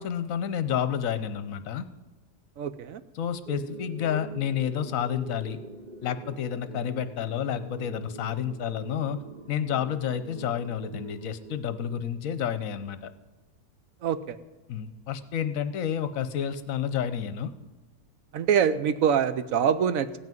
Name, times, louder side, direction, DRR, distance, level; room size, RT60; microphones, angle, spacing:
voice 1, 0.0-1.8 3.1-5.6 6.0-9.2 9.5-13.1 14.7-17.5, left 8 dB, 65° left, 12 dB, 1.1 m, -30 dB
voice 2, 2.6-3.0 14.0-14.4 18.3-20.2, right 8 dB, 65° right, 13 dB, 1.0 m, -24 dB
sound 1, 3.5-12.5, right 2 dB, 35° right, 0.8 m, -44 dB
16.0 x 5.9 x 9.1 m, 1.2 s
omnidirectional pair, 1.7 m